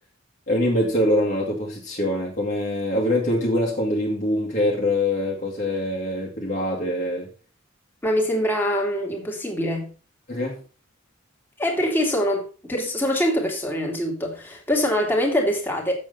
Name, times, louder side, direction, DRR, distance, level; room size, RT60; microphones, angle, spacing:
voice 1, 0.5-7.3 10.3-10.6, left 1 dB, 40° left, -2 dB, 2.1 m, -24 dB
voice 2, 8.0-9.9 11.6-15.9, equal, 10° left, 0 dB, 2.5 m, -24 dB
7.7 x 7.5 x 5.4 m, 0.35 s
head